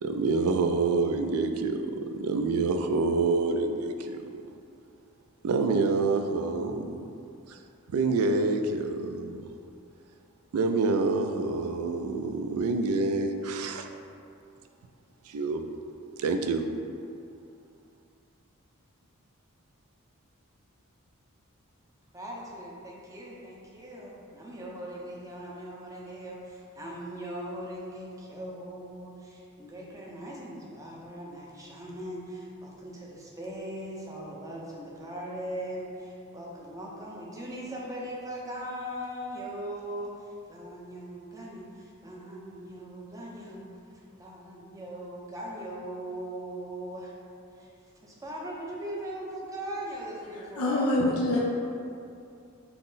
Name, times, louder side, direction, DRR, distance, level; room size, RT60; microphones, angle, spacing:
voice 1, 0.0-4.3 5.4-7.0 7.5-7.6 7.9-9.5 10.5-13.9 15.3-15.7 16.2-16.7, right 3 dB, 80° right, 6 dB, 0.4 m, -27 dB
voice 2, 22.1-43.7 44.2-47.2 47.5-50.9, right 1 dB, 15° right, -4 dB, 0.5 m, -40 dB
voice 3, 50.3-51.4, left 1 dB, 80° left, -5 dB, 0.5 m, -26 dB
5.7 x 2.0 x 3.9 m, 2.6 s
head